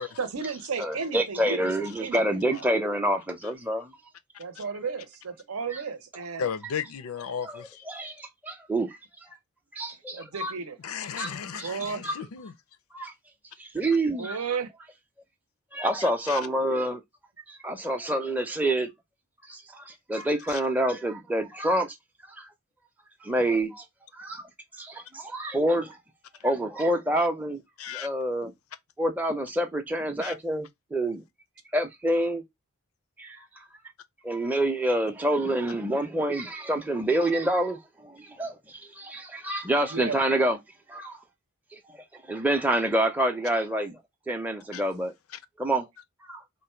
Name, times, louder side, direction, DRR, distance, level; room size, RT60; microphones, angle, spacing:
voice 1, 0.2-2.7 4.4-6.5 10.1-10.8 11.6-12.1 14.2-14.7 39.9-40.2, right 5 dB, 80° right, 0.7 m, -34 dB
voice 2, 0.8-3.9 5.7-5.8 7.3-9.4 9.7-10.5 11.2-12.1 12.9-13.1 13.6-14.4 15.7-17.0 17.5-18.9 19.5-21.9 22.3-22.5 23.2-23.8 24.1-24.4 24.8-26.0 26.4-27.6 27.9-28.5 29.0-31.2 31.7-32.4 33.2-33.6 34.2-40.6 40.9-41.2 41.7-44.0 44.3-45.1 45.6-45.9 46.2-46.4, right 1 dB, 10° right, 0.5 m, -27 dB
voice 3, 6.4-7.8 10.8-12.5 16.0-16.4 20.5-20.6 27.2-27.3 27.8-28.1 30.2-30.4 44.7-44.8, left 7 dB, 75° left, 0.5 m, -35 dB
3.8 x 2.2 x 4.3 m
head